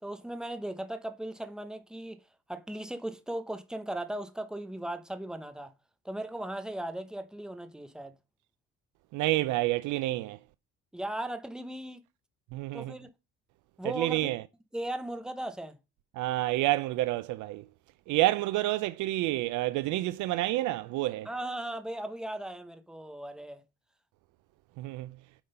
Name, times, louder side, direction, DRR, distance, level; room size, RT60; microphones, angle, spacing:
voice 1, 0.0-2.2 2.5-5.7 6.0-8.1 10.9-12.0 12.7-13.1 13.8-14.3 14.7-15.8 21.2-23.6, right 1 dB, ahead, 0.8 m, -37 dB
voice 2, 9.1-10.4 12.5-12.9 13.8-14.4 16.2-17.6 18.1-21.3 24.8-25.1, right 17 dB, 75° right, 0.5 m, -29 dB
8.7 x 3.9 x 5.4 m
cardioid pair, 135°, 30 cm